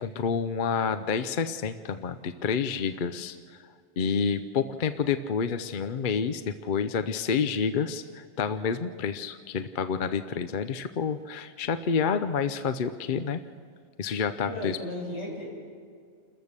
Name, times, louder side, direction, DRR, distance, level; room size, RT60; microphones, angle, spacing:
voice 1, 0.0-3.4 4.0-13.4 14.0-14.8, left 6 dB, 50° left, 10 dB, 0.8 m, -29 dB
voice 2, 14.5-15.5, left 1 dB, 80° left, -4 dB, 7.0 m, -35 dB
29.5 x 14.5 x 6.6 m, 2.1 s
omnidirectional pair, 1.2 m